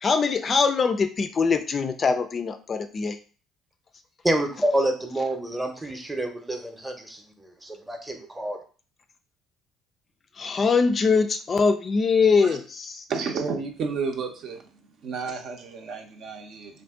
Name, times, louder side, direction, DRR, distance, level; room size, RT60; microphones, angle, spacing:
voice 1, 0.0-3.2 10.4-13.0, left 5 dB, 40° left, 8 dB, 0.3 m, -22 dB
voice 2, 4.2-8.6, right 1 dB, 10° right, 5 dB, 0.7 m, -28 dB
voice 3, 13.1-14.6 15.0-16.8, right 5 dB, 65° right, 4 dB, 0.7 m, -31 dB
2.6 x 2.5 x 3.6 m, 0.38 s
supercardioid pair, 85°, 0 cm